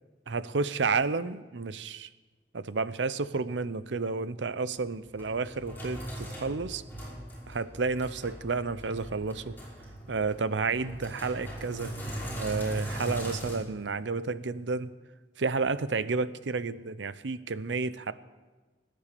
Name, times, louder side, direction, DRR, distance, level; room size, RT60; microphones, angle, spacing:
voice 1, 0.3-2.1 2.5-6.8 7.5-9.5 10.1-11.9 12.4-14.9 15.4-18.1, right 4 dB, 90° right, 15 dB, 0.7 m, -31 dB
Sink (filling or washing), 4.7-13.5, equal, 10° left, 5.7 m, -40 dB
19.5 x 10.5 x 6.8 m, 1.3 s
head